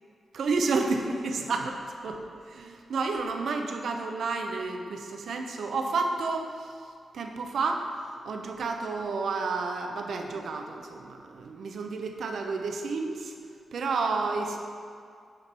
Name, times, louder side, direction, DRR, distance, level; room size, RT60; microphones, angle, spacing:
voice 1, 0.3-6.7 7.1-7.8 8.2-13.3 13.7-14.6, right 4 dB, 75° right, 4 dB, 0.7 m, -30 dB
8.7 x 5.2 x 4.3 m, 2.2 s
supercardioid pair, 50°, 0 cm